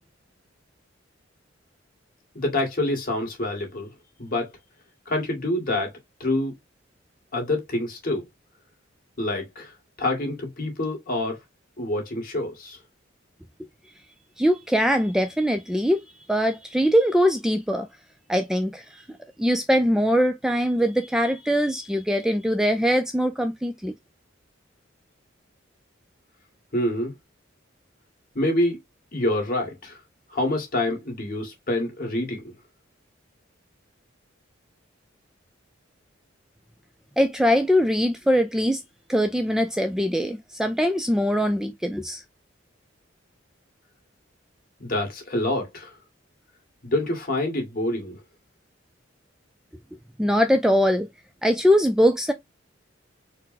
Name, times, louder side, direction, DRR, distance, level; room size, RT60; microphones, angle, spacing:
voice 1, 2.3-3.9 4.2-4.5 5.1-5.9 6.2-6.5 7.3-8.2 9.2-9.7 10.0-11.4 11.8-12.8 26.7-27.1 28.4-28.8 29.1-30.0 30.3-32.4 44.8-45.9 46.8-48.2, left 1 dB, 45° left, 1.9 m, -26 dB
voice 2, 14.4-16.0 16.3-17.9 18.3-19.0 19.4-23.9 37.2-38.8 39.1-42.2 50.2-51.1 51.4-52.3, equal, 5° right, 0.4 m, -22 dB
4.3 x 2.1 x 4.0 m
head